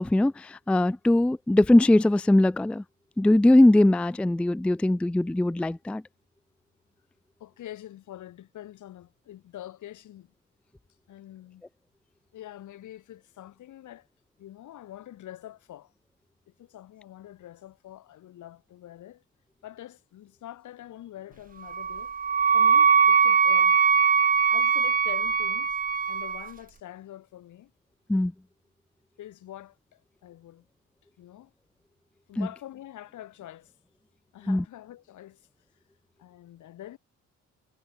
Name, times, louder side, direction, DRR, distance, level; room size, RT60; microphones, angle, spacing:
voice 1, 0.0-2.8 3.2-6.0 28.1-28.3 32.4-32.5 34.5-34.6, left 1 dB, 5° left, 0.4 m, -21 dB
voice 2, 7.4-10.3 11.1-11.6 12.3-14.1 14.4-15.9 16.5-19.2 19.6-22.1 22.5-23.8 24.5-25.8 26.1-27.7 29.2-30.7 31.2-31.5 32.3-33.7 34.3-35.5 36.2-37.0, left 13 dB, 75° left, 3.5 m, -45 dB
Wind instrument woodwind instrument, 21.7-26.5, right 6 dB, 30° right, 0.7 m, -21 dB
cardioid pair, 90°, 30 cm